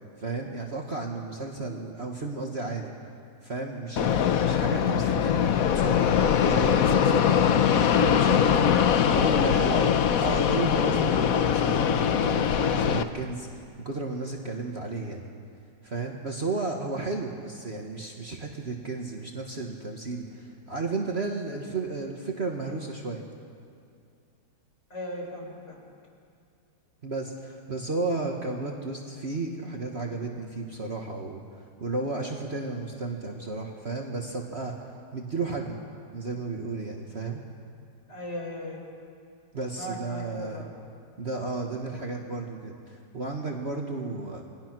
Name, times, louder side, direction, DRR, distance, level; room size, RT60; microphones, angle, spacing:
voice 1, 0.2-2.9 3.4-7.5 8.0-15.3 15.8-23.2 27.0-35.8 36.1-37.4 39.5-40.6 41.2-44.4, right 3 dB, 35° right, 1 dB, 1.7 m, -33 dB
Fixed-wing aircraft airplane, 4.0-13.0, left 8 dB, 60° left, 1.1 m, -22 dB
voice 2, 9.2-9.9 24.9-25.8 38.1-38.8 39.7-40.7, left 1 dB, 40° left, 0 dB, 4.5 m, -36 dB
28.5 x 20.5 x 6.2 m, 2.4 s
omnidirectional pair, 1.9 m